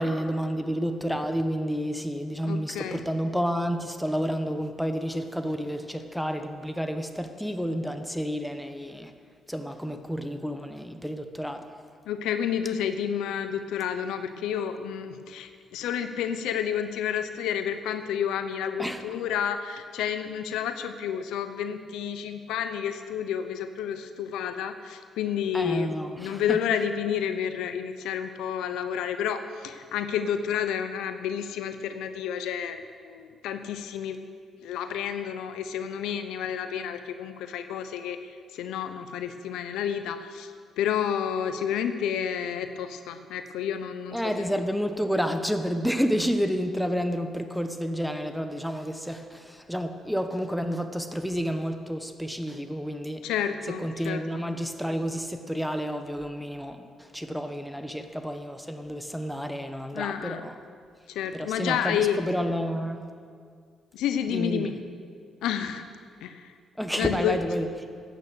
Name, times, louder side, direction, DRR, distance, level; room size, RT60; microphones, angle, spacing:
voice 1, 0.0-9.1 9.5-11.7 18.8-19.0 25.5-26.6 44.1-53.3 53.7-60.6 61.3-63.1 64.3-64.7 66.8-67.7, equal, ahead, 7 dB, 1.1 m, -30 dB
voice 2, 2.4-3.0 12.1-25.9 26.2-34.2 34.6-38.2 38.5-40.5 40.8-44.4 53.2-54.2 59.9-60.4 61.1-62.2 63.9-64.7 65.4-65.8 66.2-66.5 67.0-67.4, left 8 dB, 90° left, 9 dB, 0.8 m, -30 dB
15.5 x 9.0 x 6.5 m, 2.1 s
cardioid pair, 90°, 0 cm